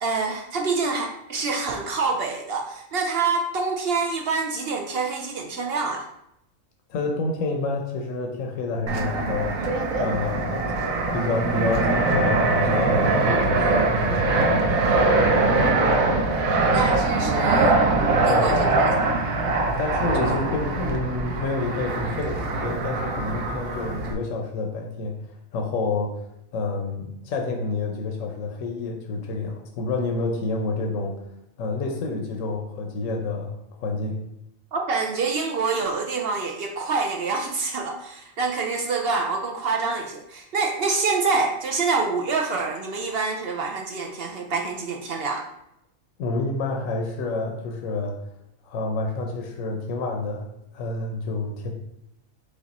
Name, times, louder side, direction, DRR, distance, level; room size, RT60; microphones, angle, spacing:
voice 1, 0.0-6.1 16.4-17.8 18.2-18.9 20.1-20.3 34.7-45.5, right 4 dB, 65° right, 2 dB, 0.6 m, -26 dB
voice 2, 6.9-9.5 10.0-15.1 18.3-18.7 19.8-25.2 25.5-26.3 26.5-31.1 31.6-33.5 33.8-34.2 46.2-48.2 48.6-50.5 50.7-51.7, left 3 dB, 75° left, 2 dB, 1.0 m, -28 dB
Fixed-wing aircraft airplane, 8.9-24.1, right 3 dB, 85° right, 1.1 m, -22 dB
5.1 x 2.4 x 4.0 m, 0.82 s
omnidirectional pair, 1.4 m